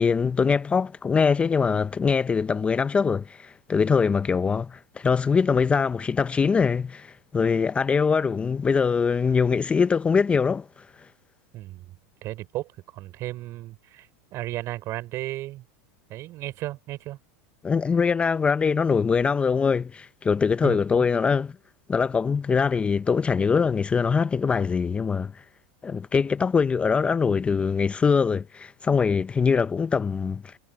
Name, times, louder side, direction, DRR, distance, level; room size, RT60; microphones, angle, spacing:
voice 1, 0.0-10.9 17.6-21.5 21.9-25.4 25.8-30.6, left 5 dB, 15° left, 0.6 m, -23 dB
voice 2, 11.5-11.9 12.2-15.6 16.1-17.2 20.6-21.0, right 16 dB, 45° right, 5.5 m, -35 dB
supercardioid pair, 120°, 7 cm